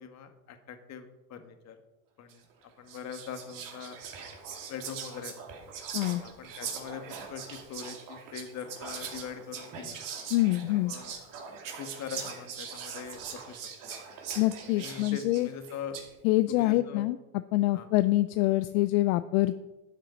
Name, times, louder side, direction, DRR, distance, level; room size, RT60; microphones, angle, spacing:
voice 1, 0.0-1.8 2.2-2.4 2.8-4.0 4.7-5.3 6.2-10.0 10.8-11.1 11.8-13.6 13.9-14.0 14.7-16.0 16.5-17.1 17.7-17.9, left 7 dB, 35° left, 7 dB, 1.6 m, -42 dB
Whispering, 2.3-2.5 2.9-16.1, right 7 dB, 45° right, 2.7 m, -41 dB
voice 2, 10.3-10.9 14.4-15.5 16.2-17.2 17.5-19.6, left 17 dB, 65° left, 12 dB, 0.6 m, -25 dB
12.0 x 7.4 x 5.2 m, 1.1 s
supercardioid pair, 115°, 46 cm